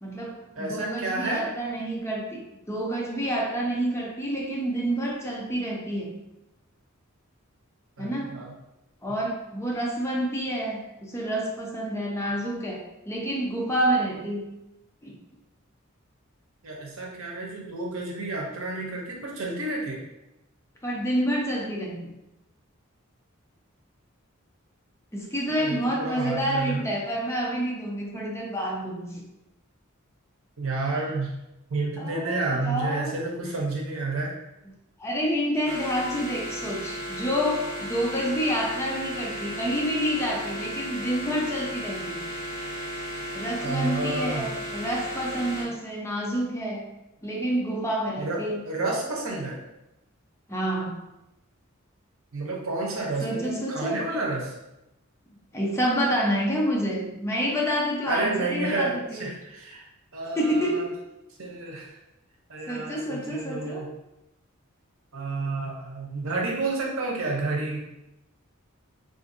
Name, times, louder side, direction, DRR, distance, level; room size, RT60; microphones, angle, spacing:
voice 1, 0.0-2.4 2.7-6.1 8.0-8.4 9.0-14.5 15.0-15.1 20.8-22.1 25.1-29.2 32.0-33.1 35.0-42.2 43.3-46.9 47.2-48.6 50.5-51.0 53.2-54.0 55.5-59.3 60.3-60.9 62.7-63.8, equal, 15° left, -2 dB, 0.5 m, -28 dB
voice 2, 0.6-1.5 8.0-8.5 16.6-20.0 25.5-26.9 30.6-31.3 31.7-34.3 43.6-44.5 48.2-49.6 52.3-54.5 58.1-59.9 60.1-60.9 61.4-62.0 62.5-63.9 65.1-67.8, right 2 dB, 80° right, -1 dB, 0.7 m, -30 dB
sound 1, 35.6-45.6, equal, 30° left, 1.0 m, -35 dB
3.6 x 2.5 x 2.6 m, 0.90 s
head